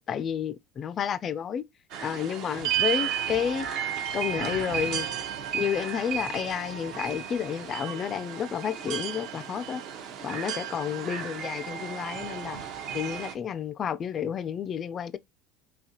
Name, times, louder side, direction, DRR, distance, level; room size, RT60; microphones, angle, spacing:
voice 1, 0.0-1.6 2.0-3.7 4.1-5.1 5.5-9.8 10.2-12.6 12.9-15.2, left 8 dB, 30° left, 0.3 m, -31 dB
sound 1, 1.9-13.3, right 9 dB, 55° right, 0.6 m, -33 dB
3.9 x 2.8 x 2.8 m
supercardioid pair, 135°, 0 cm